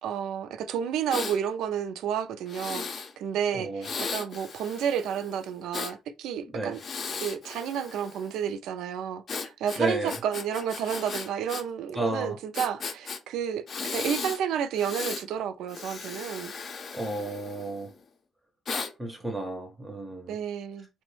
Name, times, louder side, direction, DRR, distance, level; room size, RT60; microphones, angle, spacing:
voice 1, 0.0-6.8 7.1-16.5 20.3-20.9, right 8 dB, 85° right, 0.3 m, -31 dB
Breathing, 1.1-1.4 2.5-3.1 3.8-5.9 6.7-8.3 9.3-11.6 11.9-12.0 12.5-13.2 13.7-14.4 14.7-15.2 15.7-17.9 18.7-18.9, left 5 dB, 50° left, 0.5 m, -36 dB
voice 2, 3.5-3.9 6.5-6.8 9.8-10.1 11.9-12.4 16.9-17.9 19.0-20.4, right 2 dB, 15° right, 0.5 m, -32 dB
2.9 x 2.1 x 3.1 m
cardioid pair, 90°, 0 cm